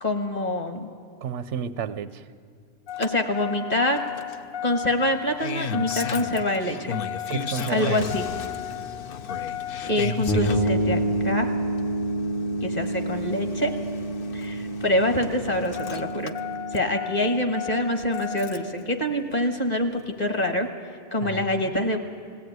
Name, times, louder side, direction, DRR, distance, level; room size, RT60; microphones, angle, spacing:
voice 1, 0.0-0.9 3.0-4.0 4.6-7.0 7.7-8.3 9.8-11.5 12.6-13.7 14.3-16.3 16.7-20.7 21.1-22.0, left 1 dB, 35° left, 6 dB, 1.5 m, -25 dB
voice 2, 1.2-2.2 7.3-8.1 21.2-21.4, right 8 dB, 85° right, 13 dB, 1.0 m, -31 dB
Engine starting, 2.9-18.8 20.0-20.1, left 7 dB, 55° left, 0.9 m, -34 dB
sound 1, 10.3-19.9, right 1 dB, 80° left, 6.2 m, -29 dB
20.0 x 16.0 x 9.3 m, 2.1 s
omnidirectional pair, 1.2 m